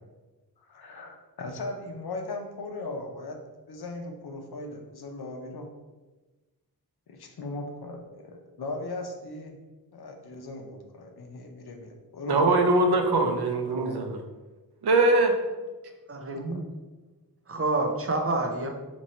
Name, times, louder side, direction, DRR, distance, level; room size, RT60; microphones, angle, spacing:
voice 1, 0.6-3.4 3.7-5.7 7.1-9.6 9.9-12.6 13.7-14.0 16.5-16.6, left 2 dB, 80° left, 3 dB, 0.7 m, -38 dB
voice 2, 12.3-14.2 14.8-15.3, right 2 dB, 85° right, 4 dB, 0.6 m, -22 dB
voice 3, 16.1-16.7 17.5-18.7, right 2 dB, 35° right, 3 dB, 0.5 m, -28 dB
3.0 x 2.6 x 4.2 m, 1.2 s
wide cardioid pair, 80°, 38 cm